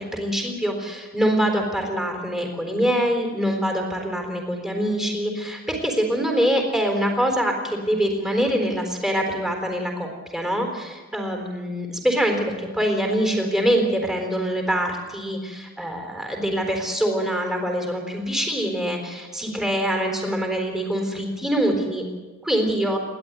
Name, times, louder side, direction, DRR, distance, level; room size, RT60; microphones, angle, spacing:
voice 1, 0.0-22.0 22.4-23.0, equal, ahead, 2 dB, 3.9 m, -24 dB
29.0 x 12.0 x 9.5 m, 1.3 s
head